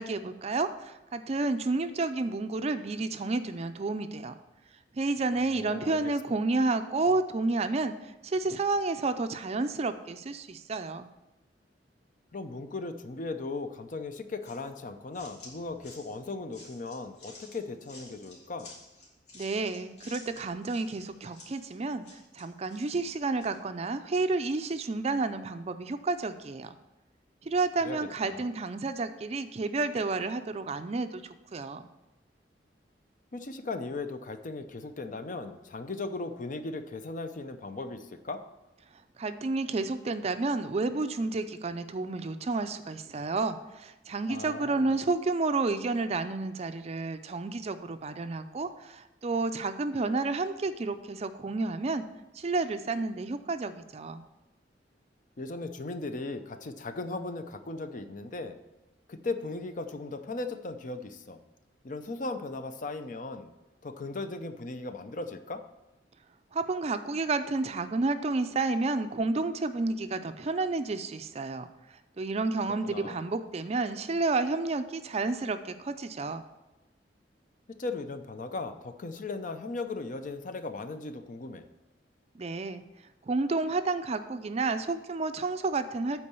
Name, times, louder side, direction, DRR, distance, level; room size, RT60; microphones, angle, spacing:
voice 1, 0.0-4.4 4.9-11.1 19.3-26.8 27.4-31.9 39.2-52.0 52.3-54.2 66.5-76.4 82.3-82.8 83.3-86.2, right 3 dB, 35° right, 10 dB, 0.4 m, -30 dB
voice 2, 5.5-6.1 12.3-18.7 27.8-28.4 33.3-38.4 44.3-45.0 55.4-58.6 59.1-61.4 61.8-63.5 63.8-65.6 72.8-73.2 77.8-81.7, left 3 dB, 45° left, 9 dB, 0.6 m, -37 dB
sound 1, 14.4-23.6, left 2 dB, 75° left, 2.5 m, -52 dB
8.5 x 4.6 x 6.8 m, 1.0 s
head